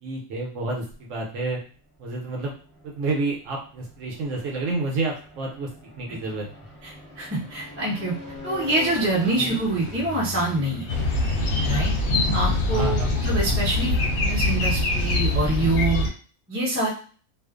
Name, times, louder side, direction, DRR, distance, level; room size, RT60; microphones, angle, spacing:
voice 1, 0.0-1.6 2.0-2.5 2.8-5.7 6.0-6.5 9.4-9.6 12.7-13.1, right 3 dB, 70° right, -2 dB, 0.9 m, -29 dB
sound 1, 0.6-1.4 2.1-16.1, left 1 dB, 25° left, 0.9 m, -43 dB
voice 2, 7.2-8.1 8.4-10.8 11.6-11.9 12.3-13.9 14.2-16.1 16.5-16.9, right 2 dB, 15° right, -5 dB, 0.4 m, -25 dB
sound 2, 10.9-16.1, left 2 dB, 70° left, 0.9 m, -23 dB
2.4 x 2.3 x 2.3 m, 0.41 s
omnidirectional pair, 1.5 m